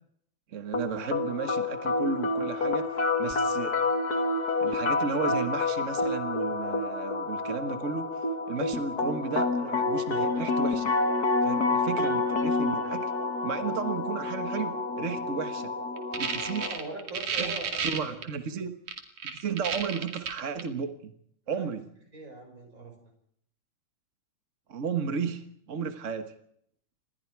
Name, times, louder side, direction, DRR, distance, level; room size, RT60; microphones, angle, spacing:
voice 1, 0.5-3.8 4.6-8.1 8.5-10.9 11.4-13.1 13.4-15.7 16.1-16.8 17.4-18.7 19.3-21.1 21.5-21.9 24.7-26.3, right 6 dB, 55° right, 8 dB, 0.8 m, -34 dB
sound 1, 0.7-16.7, left 3 dB, 35° left, 1.9 m, -28 dB
sound 2, 16.0-18.2 18.9-20.6, right 6 dB, 70° right, 3.8 m, -31 dB
voice 2, 16.6-18.2 21.5-21.7 22.1-23.0, right 2 dB, 25° right, 4 dB, 5.9 m, -41 dB
28.5 x 21.5 x 4.7 m, 0.68 s
omnidirectional pair, 3.4 m